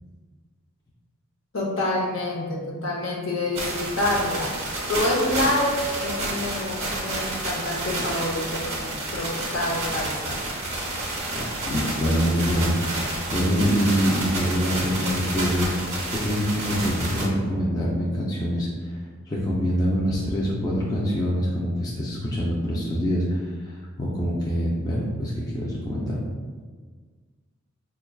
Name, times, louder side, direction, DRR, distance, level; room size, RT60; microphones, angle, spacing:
voice 1, 1.5-4.5 4.9-10.4, left 1 dB, 60° left, -3 dB, 0.8 m, -27 dB
sound 1, 3.5-17.3, right 2 dB, 30° right, 0.8 m, -30 dB
voice 2, 11.3-15.8 16.1-18.9 19.3-26.3, equal, 15° left, -6 dB, 0.4 m, -25 dB
5.6 x 2.3 x 2.3 m, 1.5 s
head